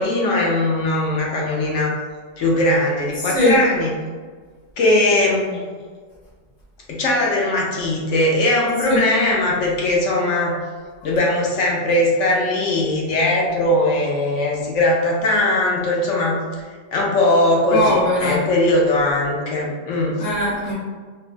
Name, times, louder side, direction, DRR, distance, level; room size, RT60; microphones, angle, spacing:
voice 1, 0.0-1.9 2.4-3.9 4.8-5.6 6.9-10.5 11.0-16.4 16.9-20.3, left 1 dB, 80° left, -2 dB, 1.0 m, -19 dB
voice 2, 3.2-3.6 8.9-9.0 17.7-18.4 20.2-20.7, left 1 dB, 45° left, -8 dB, 1.1 m, -20 dB
3.1 x 2.2 x 2.5 m, 1.5 s
omnidirectional pair, 1.3 m